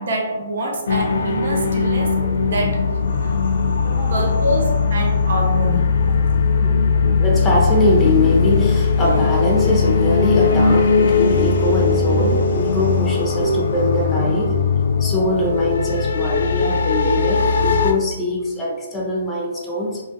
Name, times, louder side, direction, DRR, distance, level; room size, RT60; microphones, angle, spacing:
voice 1, 0.0-2.1 2.5-2.9 3.2-3.4 4.1-6.0, equal, 65° right, -1 dB, 0.6 m, -25 dB
sound 1, 0.9-17.9, left 4 dB, 70° left, 0.3 m, -19 dB
voice 2, 2.2-2.6 3.8-4.3 6.1-6.2 6.5-14.6 15.0-20.0, left 1 dB, 10° left, -3 dB, 0.6 m, -22 dB
2.4 x 2.2 x 2.6 m, 1.1 s
hypercardioid pair, 135°, 0 cm